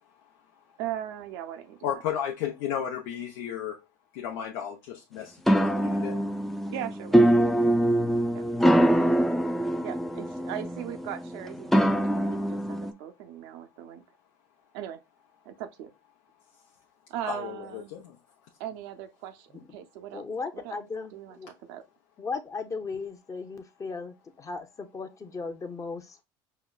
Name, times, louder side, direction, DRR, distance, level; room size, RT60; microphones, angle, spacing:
voice 1, 0.8-2.0 6.7-7.5 8.3-8.4 9.8-14.0 14.7-15.0 15.4-15.9 17.1-17.9 18.6-20.2 20.5-20.8 21.1-21.8, right 11 dB, 80° right, 0.6 m, -39 dB
voice 2, 1.8-3.8 4.1-6.2 17.3-18.2, left 9 dB, 80° left, 0.7 m, -34 dB
sound 1, 5.5-12.9, right 1 dB, ahead, 0.4 m, -24 dB
voice 3, 20.1-21.5 22.2-26.2, left 4 dB, 25° left, 0.7 m, -36 dB
5.6 x 2.1 x 2.3 m
supercardioid pair, 90°, 12 cm